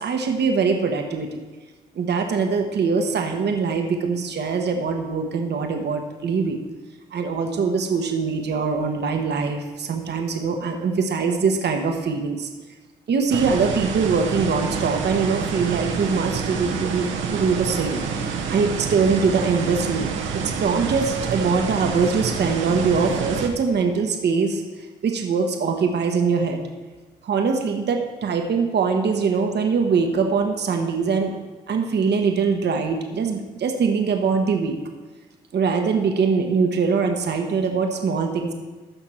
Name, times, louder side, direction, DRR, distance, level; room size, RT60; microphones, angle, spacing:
voice 1, 0.0-1.4 1.9-6.6 7.1-12.5 13.1-20.1 20.3-24.6 25.0-26.6 27.2-31.3 31.7-34.8 35.5-38.5, right 5 dB, 60° right, 4 dB, 1.1 m, -22 dB
sound 1, 13.3-23.5, right 6 dB, 75° right, 1.0 m, -28 dB
14.5 x 5.9 x 4.4 m, 1.3 s
hypercardioid pair, 40°, 20 cm